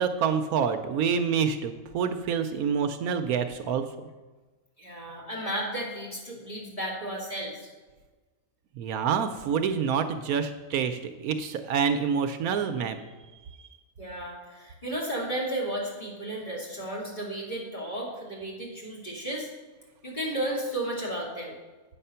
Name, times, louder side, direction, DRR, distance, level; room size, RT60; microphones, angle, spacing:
voice 1, 0.0-3.8 8.8-13.0, right 7 dB, 75° right, 8 dB, 1.1 m, -27 dB
voice 2, 4.8-7.7 14.0-19.5 20.0-21.6, right 1 dB, 30° left, -5 dB, 2.7 m, -33 dB
8.6 x 6.6 x 5.6 m, 1.3 s
omnidirectional pair, 1.6 m